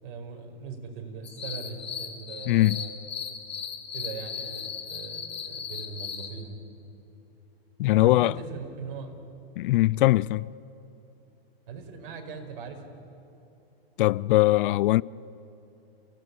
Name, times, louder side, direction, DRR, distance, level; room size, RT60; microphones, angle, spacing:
voice 1, 0.0-2.9 3.9-6.6 7.9-9.2 11.7-12.8, right 5 dB, 55° right, 5.0 m, -40 dB
sound 1, 1.2-6.4, left 7 dB, 20° left, 2.2 m, -37 dB
voice 2, 2.5-2.8 7.8-8.3 9.6-10.5 14.0-15.0, left 17 dB, 60° left, 0.5 m, -21 dB
28.5 x 17.5 x 9.7 m
hypercardioid pair, 140°, 30 cm